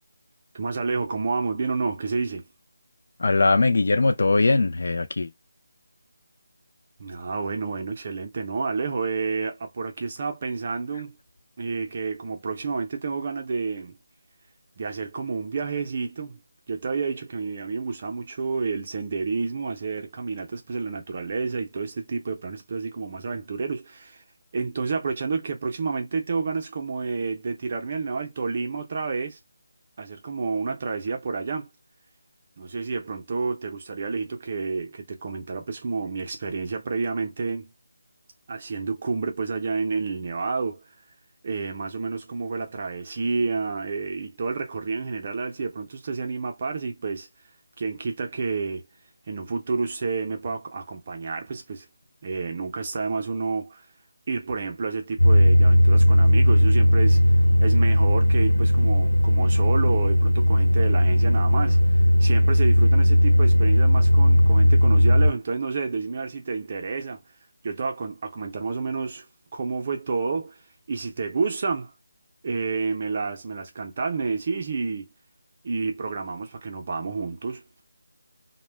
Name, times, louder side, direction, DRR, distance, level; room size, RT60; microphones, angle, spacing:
voice 1, 0.5-2.4 7.0-11.2 11.6-14.0 14.8-16.4 16.7-24.2 24.5-29.4 30.0-31.7 32.6-37.7 38.5-40.8 41.4-47.3 47.8-48.9 49.3-51.9 52.2-53.8 54.3-57.2 57.6-61.8 62.2-67.2 67.6-69.2 69.5-70.6 70.9-71.9 72.4-75.1 75.6-77.6, right 4 dB, 30° right, 0.5 m, -29 dB
voice 2, 3.2-5.3, left 3 dB, 55° left, 0.4 m, -20 dB
sound 1, 55.2-65.3, equal, 80° left, 0.9 m, -17 dB
2.1 x 2.0 x 3.2 m
figure-of-eight pair, 175°, 0 cm